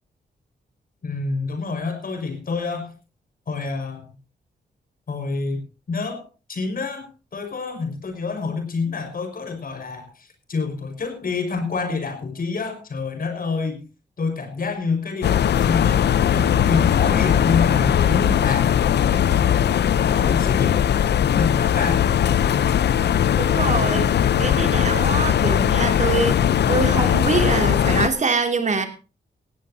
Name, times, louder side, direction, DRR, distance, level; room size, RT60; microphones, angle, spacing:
voice 1, 1.0-2.9 3.5-4.1 5.1-5.6 5.9-13.8 14.2-18.7 19.1-19.6 20.0-20.8 21.3-22.1, left 4 dB, 55° left, 7 dB, 5.6 m, -27 dB
sound 1, 15.2-28.1, left 9 dB, 80° left, 0.8 m, -19 dB
voice 2, 23.4-26.4 26.7-28.9, right 4 dB, 45° right, 6 dB, 3.0 m, -24 dB
18.0 x 16.5 x 2.8 m, 0.33 s
cardioid pair, 95°, 17 cm